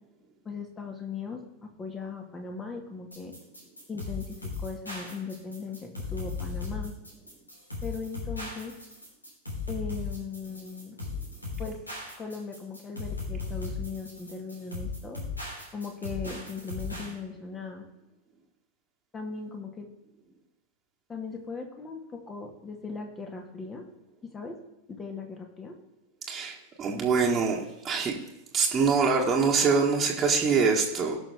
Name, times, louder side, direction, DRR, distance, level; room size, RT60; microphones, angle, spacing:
voice 1, 0.5-3.3 3.9-7.0 7.8-8.8 9.7-11.0 11.6-11.8 12.2-15.2 15.7-17.9 19.1-19.9 21.1-23.9 24.2-24.5 24.9-25.8, left 4 dB, 20° left, 3 dB, 2.0 m, -38 dB
sound 1, 3.1-17.1, left 4 dB, 80° left, 3.5 m, -37 dB
voice 2, 26.3-28.1 28.5-31.2, right 5 dB, 20° right, -3 dB, 1.8 m, -24 dB
18.0 x 6.2 x 3.6 m, 0.95 s
figure-of-eight pair, 90°, 0 cm